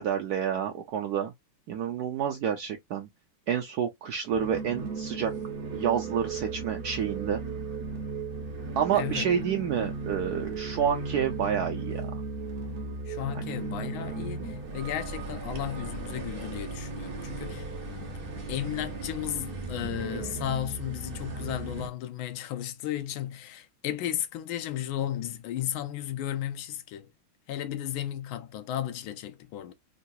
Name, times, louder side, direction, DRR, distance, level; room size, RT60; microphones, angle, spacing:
voice 1, 0.0-1.3 1.7-3.1 3.5-5.3 5.7-7.4 8.8-12.1, right 8 dB, 75° right, 0.9 m, -29 dB
sound 1, 4.2-21.9, right 3 dB, 50° right, 0.7 m, -36 dB
voice 2, 8.9-9.3 13.1-18.2 18.5-27.1 27.5-29.7, left 11 dB, 85° left, 1.4 m, -34 dB
3.8 x 2.2 x 2.6 m
omnidirectional pair, 2.2 m